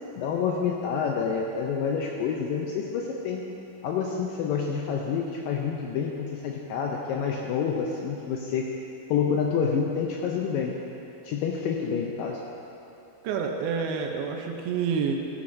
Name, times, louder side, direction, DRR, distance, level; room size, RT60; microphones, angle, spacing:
voice 1, 0.2-3.4 3.8-8.7 9.1-10.8 11.3-12.4, left 6 dB, 80° left, 0 dB, 2.0 m, -28 dB
voice 2, 13.2-15.1, right 6 dB, 80° right, 3 dB, 2.5 m, -28 dB
14.5 x 9.8 x 2.6 m, 2.9 s
omnidirectional pair, 4.5 m